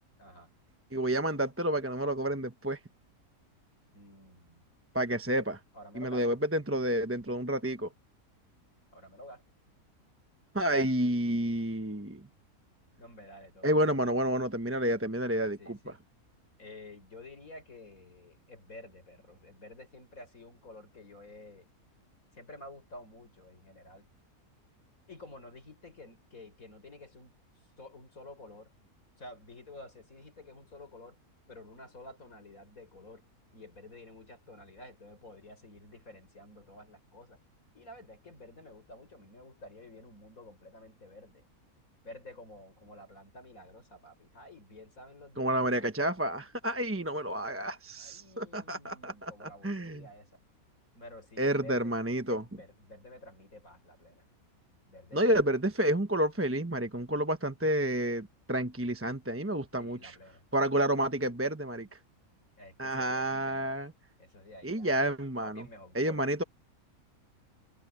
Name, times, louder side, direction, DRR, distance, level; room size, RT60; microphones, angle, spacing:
voice 1, 0.9-2.8 4.9-5.6 5.9-7.9 10.5-12.2 13.6-15.8 45.4-50.1 51.4-52.4 55.1-60.2 60.5-61.9 62.8-63.9 64.6-65.6 65.9-66.4, right 1 dB, 10° right, 0.9 m, -30 dB
voice 2, 3.9-4.6 5.7-6.2 8.9-9.4 13.0-14.1 15.6-16.0 16.6-21.7 22.3-24.1 25.1-27.3 27.8-28.7 29.2-31.2 31.5-33.3 33.5-37.4 37.7-41.5 42.0-45.9 48.0-50.4 50.9-52.0 52.3-54.3 54.9-55.5 59.8-60.4 62.6-63.7 64.2-65.0 65.4-66.3, left 2 dB, 65° left, 5.7 m, -51 dB
omnidirectional pair, 1.6 m